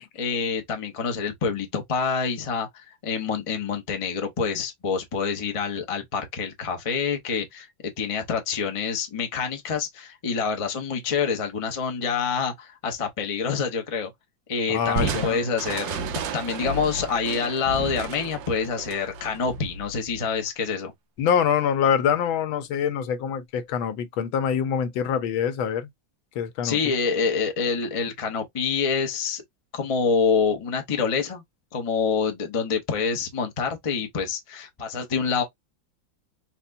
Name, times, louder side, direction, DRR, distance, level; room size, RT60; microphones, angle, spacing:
voice 1, 0.2-14.1 14.5-16.0 16.3-20.9 26.6-29.4 29.7-31.4 31.7-35.4, left 5 dB, 50° left, 0.3 m, -27 dB
voice 2, 14.7-15.4 21.2-25.9 26.3-26.8, left 8 dB, 85° left, 1.5 m, -25 dB
Crushing, 15.0-20.3, right 4 dB, 75° right, 1.4 m, -32 dB
4.2 x 2.2 x 2.5 m
omnidirectional pair, 2.1 m